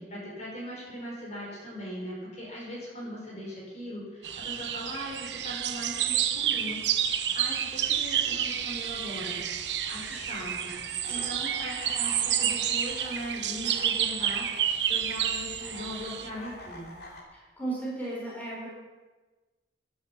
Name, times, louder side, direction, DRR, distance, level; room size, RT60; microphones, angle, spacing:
voice 1, 0.0-6.8 7.1-9.4 9.8-17.0, equal, 40° left, -4 dB, 5.8 m, -40 dB
sound 1, 4.2-16.3, right 9 dB, 85° right, 1.1 m, -30 dB
sound 2, 7.6-17.2, left 1 dB, 60° left, 3.2 m, -48 dB
voice 2, 17.6-18.7, right 2 dB, 10° left, -6 dB, 4.9 m, -34 dB
16.0 x 11.0 x 5.9 m, 1.3 s
head